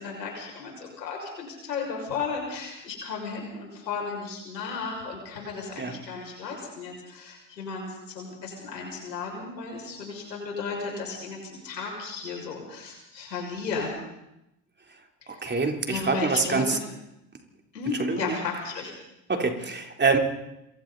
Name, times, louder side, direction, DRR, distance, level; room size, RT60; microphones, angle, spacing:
voice 1, 0.0-14.0 15.2-15.4 15.9-16.8 17.7-18.9, left 4 dB, 85° left, 0 dB, 6.3 m, -34 dB
voice 2, 15.4-16.8 18.0-18.4 19.3-20.2, right 4 dB, 20° right, 3 dB, 3.5 m, -25 dB
27.5 x 24.5 x 4.1 m, 0.88 s
hypercardioid pair, 65°, 49 cm